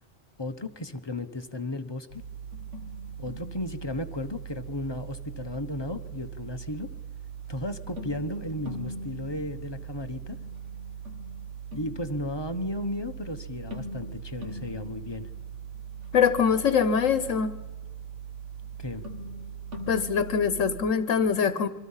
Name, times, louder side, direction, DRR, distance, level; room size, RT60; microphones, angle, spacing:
voice 1, 0.4-2.2 3.2-6.9 7.5-10.4 11.7-15.3 18.8-19.0, left 1 dB, 20° left, 9 dB, 1.0 m, -34 dB
sound 1, 2.1-20.9, right 5 dB, 70° right, 2.7 m, -40 dB
voice 2, 16.1-17.5 19.9-21.7, left 6 dB, 80° left, 13 dB, 1.3 m, -23 dB
27.5 x 24.0 x 5.7 m, 1.3 s
omnidirectional pair, 1.3 m